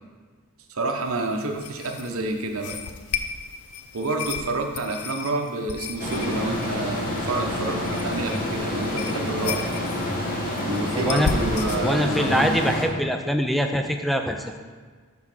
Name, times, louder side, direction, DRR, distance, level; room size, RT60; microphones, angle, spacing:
voice 1, 0.7-2.8 3.9-9.6 10.7-12.6, right 2 dB, 70° right, 3 dB, 0.8 m, -28 dB
sound 1, 1.0-11.8, left 6 dB, 80° left, 0.5 m, -35 dB
sound 2, 6.0-12.8, left 1 dB, 40° left, 1.0 m, -28 dB
voice 2, 10.9-11.3 11.8-14.6, equal, ahead, 4 dB, 0.4 m, -24 dB
6.0 x 3.8 x 6.0 m, 1.5 s
head